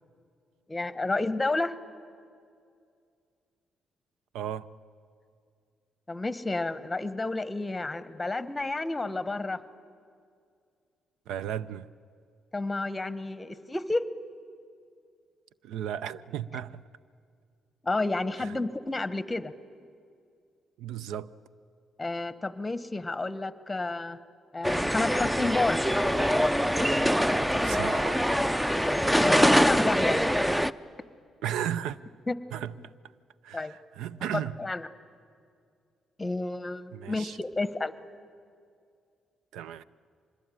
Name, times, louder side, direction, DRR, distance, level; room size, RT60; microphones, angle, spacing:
voice 1, 0.7-1.8 6.1-9.6 12.5-14.0 17.8-19.5 22.0-24.2 24.5-25.8 28.7-30.3 32.3-32.4 33.5-33.7 34.3-34.9 36.2-37.9, left 2 dB, 15° left, 1.1 m, -30 dB
voice 2, 4.3-4.7 11.3-11.9 15.6-16.8 18.4-18.6 20.8-21.3 27.6-28.2 31.4-32.0 32.5-32.7 33.4-34.6 36.9-37.4 39.5-39.8, right 10 dB, 90° right, 0.6 m, -34 dB
sound 1, 24.6-30.7, equal, 5° right, 0.5 m, -24 dB
25.0 x 21.0 x 9.2 m
cardioid pair, 90°, 0 cm